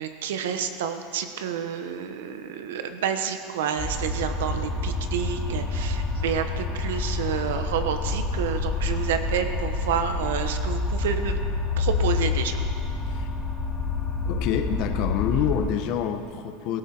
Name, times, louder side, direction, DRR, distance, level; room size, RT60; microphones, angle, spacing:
voice 1, 0.0-11.4 11.8-12.7, right 8 dB, 85° right, 8 dB, 1.2 m, -29 dB
sound 1, 3.8-15.6, left 3 dB, 10° left, 3.2 m, -28 dB
voice 2, 14.2-16.8, left 9 dB, 45° left, 7 dB, 1.0 m, -27 dB
17.0 x 14.5 x 4.5 m, 2.4 s
supercardioid pair, 160°, 0 cm